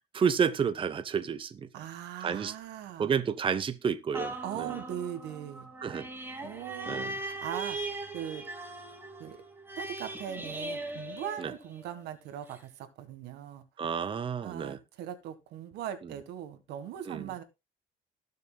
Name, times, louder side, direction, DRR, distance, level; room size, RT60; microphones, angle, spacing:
voice 1, 0.1-1.7 2.2-2.5 3.0-4.7 5.8-6.1 6.9-7.1 11.4-11.5 13.8-14.8 17.1-17.2, right 7 dB, 30° right, 0.8 m, -30 dB
voice 2, 1.7-3.2 4.4-5.7 6.4-8.5 9.2-9.4 9.8-13.7 14.4-17.4, right 10 dB, 80° right, 1.7 m, -40 dB
sound 1, 4.1-12.0 12.5-12.6, right 2 dB, 15° right, 2.5 m, -39 dB
19.5 x 6.7 x 2.3 m
cardioid pair, 110°, 17 cm